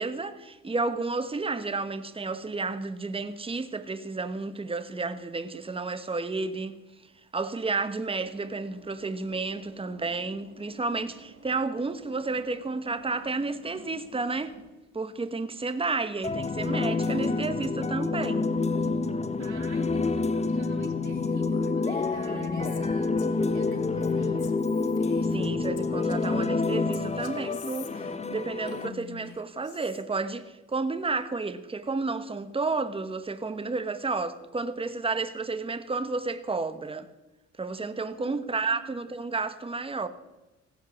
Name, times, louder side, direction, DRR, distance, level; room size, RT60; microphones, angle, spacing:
voice 1, 0.0-6.8 7.3-14.5 14.9-18.5 22.3-22.8 25.3-37.1 37.6-40.1, right 3 dB, 20° right, 1.1 m, -31 dB
sound 1, 8.1-14.7, right 4 dB, 45° right, 3.9 m, -52 dB
sound 2, 16.2-28.9, left 3 dB, 20° left, 0.9 m, -28 dB
voice 2, 19.4-24.6 38.2-39.0, right 7 dB, 70° right, 3.1 m, -46 dB
Female speech woman speaking, 21.1-26.5 26.9-30.0, left 10 dB, 80° left, 1.5 m, -46 dB
16.0 x 10.5 x 7.2 m
cardioid pair, 90°, 30 cm